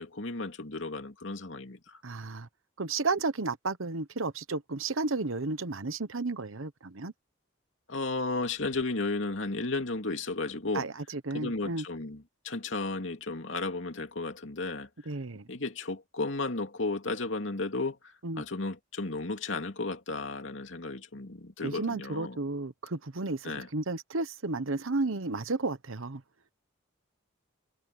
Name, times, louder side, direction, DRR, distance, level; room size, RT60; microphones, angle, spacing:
voice 1, 0.0-2.0 7.9-10.9 11.3-14.9 15.5-22.4 23.4-23.7, left 3 dB, 70° left, 2.6 m, -34 dB
voice 2, 2.0-2.5 2.8-7.1 10.7-11.8 15.1-15.5 18.2-18.4 21.6-26.2, right 3 dB, 85° right, 1.1 m, -33 dB
head